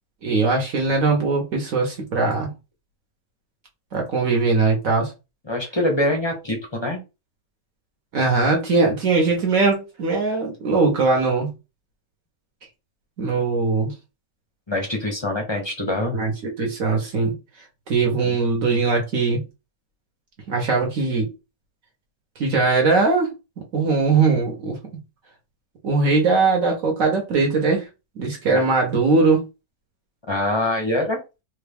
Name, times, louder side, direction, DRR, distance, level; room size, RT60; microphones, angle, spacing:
voice 1, 0.2-2.5 3.9-5.1 8.1-11.5 13.2-13.9 16.1-17.4 17.9-19.4 20.5-21.3 22.4-23.3 23.7-24.8 25.8-27.9 28.2-29.5, right 4 dB, 60° right, 1.2 m, -20 dB
voice 2, 5.5-7.0 14.7-16.1 18.2-18.4 28.5-28.6 30.3-31.2, left 1 dB, 30° left, 0.5 m, -24 dB
3.4 x 2.3 x 3.4 m
omnidirectional pair, 1.7 m